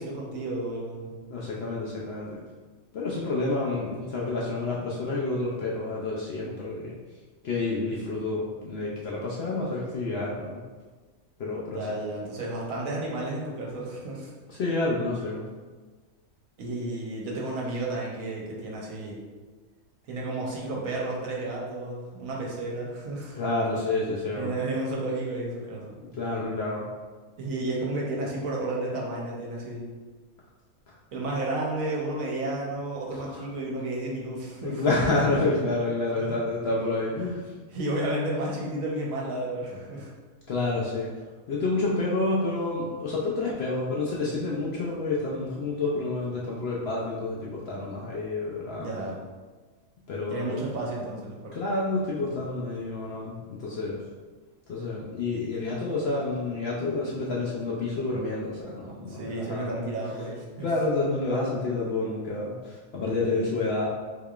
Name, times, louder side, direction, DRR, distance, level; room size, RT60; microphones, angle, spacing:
voice 1, 0.0-1.1 11.7-14.3 16.6-19.2 20.1-23.4 24.4-25.9 27.4-29.9 31.1-34.9 36.2-36.4 37.7-40.1 48.7-49.2 50.3-51.6 59.1-60.7 63.2-63.4, right 2 dB, 75° right, -3 dB, 1.2 m, -32 dB
voice 2, 1.3-2.4 2.9-6.9 7.4-10.5 11.4-11.8 14.5-15.4 23.4-24.5 26.0-26.9 33.3-33.4 34.6-37.4 40.5-41.1 41.5-48.9 50.1-50.4 51.5-54.0 54.7-59.9 60.6-63.9, left 2 dB, 65° left, -4 dB, 0.6 m, -29 dB
3.5 x 3.3 x 2.3 m, 1.4 s
omnidirectional pair, 1.5 m